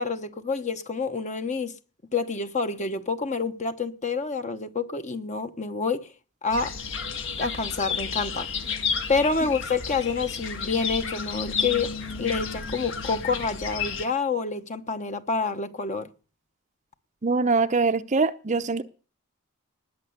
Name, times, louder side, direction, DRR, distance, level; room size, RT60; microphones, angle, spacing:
voice 1, 0.0-1.7 2.1-6.1 6.4-6.7 7.4-8.5 9.1-11.9 12.2-16.1, left 4 dB, 35° left, 1.0 m, -28 dB
sound 1, 6.5-14.1, left 5 dB, 60° left, 1.6 m, -31 dB
voice 2, 17.2-18.8, right 4 dB, 35° right, 0.7 m, -23 dB
19.5 x 6.7 x 8.0 m
head